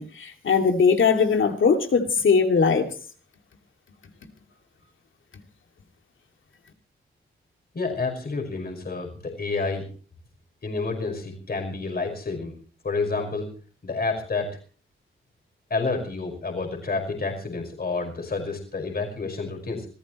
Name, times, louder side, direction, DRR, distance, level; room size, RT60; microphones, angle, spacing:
voice 1, 0.0-2.9, left 5 dB, 70° left, 5 dB, 2.7 m, -20 dB
voice 2, 7.7-9.9 10.6-12.5 12.8-13.5 13.8-14.6 15.7-19.9, left 3 dB, 45° left, 2 dB, 5.6 m, -29 dB
26.0 x 15.0 x 3.2 m, 0.40 s
cardioid pair, 65°, 21 cm